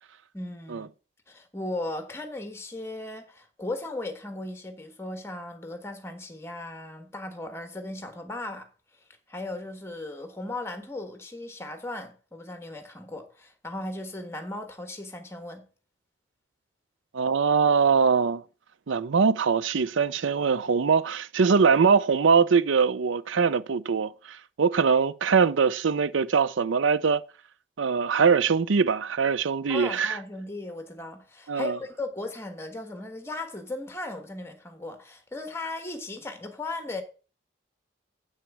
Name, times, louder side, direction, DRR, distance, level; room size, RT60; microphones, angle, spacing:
voice 1, 0.3-0.9 1.3-8.7 9.3-15.7 29.7-37.0, left 2 dB, 15° left, 1.4 m, -37 dB
voice 2, 17.1-18.4 18.9-27.2 27.8-30.2 31.5-31.8, right 5 dB, 80° right, 0.5 m, -22 dB
8.1 x 6.2 x 6.0 m
head